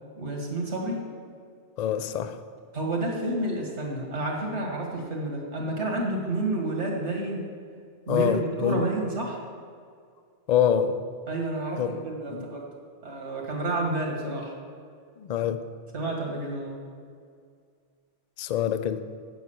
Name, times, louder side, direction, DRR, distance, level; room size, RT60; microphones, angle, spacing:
voice 1, 0.2-1.0 2.7-7.5 8.1-9.4 11.3-12.7 13.0-14.5 15.9-16.8, right 2 dB, 80° right, -1 dB, 2.0 m, -30 dB
voice 2, 1.8-2.4 8.1-8.9 10.5-11.0 11.8-11.9 12.3-12.5 15.2-15.6 18.4-19.0, left 8 dB, 55° left, 11 dB, 0.5 m, -25 dB
9.2 x 6.1 x 7.1 m, 2.1 s
omnidirectional pair, 1.2 m